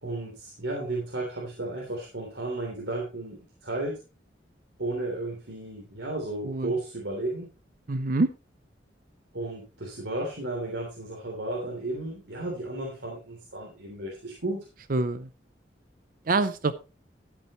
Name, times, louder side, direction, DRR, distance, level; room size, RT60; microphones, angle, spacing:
voice 1, 0.0-4.0 4.8-7.5 9.3-14.6, right 2 dB, 90° right, -2 dB, 3.4 m, -33 dB
voice 2, 7.9-8.3 14.9-15.3 16.3-16.7, right 3 dB, 50° right, 13 dB, 0.6 m, -25 dB
13.0 x 8.8 x 3.1 m, 0.30 s
head